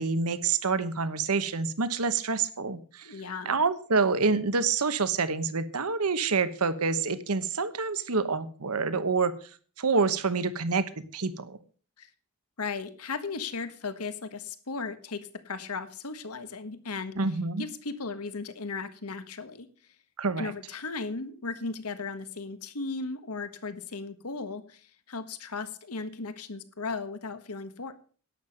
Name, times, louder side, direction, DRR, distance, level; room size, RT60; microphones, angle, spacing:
voice 1, 0.0-3.2 3.4-9.5 9.8-11.6 17.2-17.7 20.2-20.5, right 4 dB, 85° right, 13 dB, 1.1 m, -27 dB
voice 2, 3.0-3.6 12.0-12.1 12.6-17.1 17.6-19.9 20.4-27.9, left 4 dB, 85° left, 11 dB, 1.4 m, -36 dB
11.5 x 9.1 x 6.5 m, 0.41 s
head